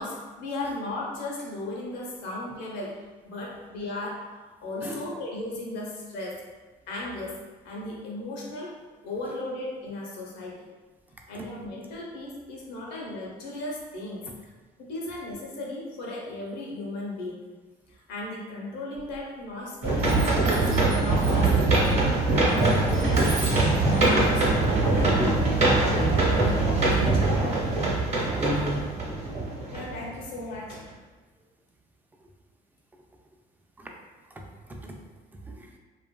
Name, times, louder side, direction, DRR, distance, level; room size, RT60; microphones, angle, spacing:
voice 1, 0.0-6.4 6.9-8.7 9.0-10.6 11.3-14.5 14.8-17.5 17.9-23.6 23.9-27.4 29.7-30.8, left 2 dB, 85° left, -3 dB, 0.8 m, -36 dB
Chime, 18.9-19.6 20.0-25.8, right 3 dB, 80° right, 0.6 m, -43 dB
sound 1, 19.8-30.2 30.7-30.8, right 2 dB, 40° right, 0.8 m, -23 dB
voice 2, 28.3-28.8 33.8-33.9 34.4-35.0 35.3-35.7, equal, 10° right, 1 dB, 0.3 m, -34 dB
2.8 x 2.4 x 2.2 m, 1.3 s
cardioid pair, 110°, 17 cm